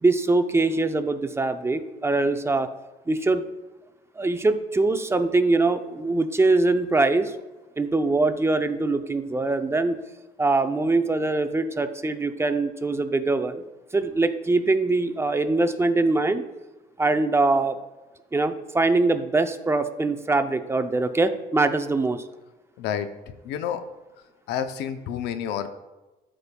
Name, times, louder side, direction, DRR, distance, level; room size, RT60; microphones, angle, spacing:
voice 1, 0.0-2.7 3.1-3.4 4.2-7.3 7.8-10.0 10.4-13.6 13.9-16.4 17.0-17.8 18.3-22.2, right 3 dB, 15° right, 9 dB, 0.5 m, -23 dB
voice 2, 22.8-23.1 23.4-23.8 24.5-25.7, left 9 dB, 85° left, 10 dB, 0.6 m, -29 dB
12.5 x 5.1 x 2.2 m, 1.1 s
cardioid pair, 110°, 17 cm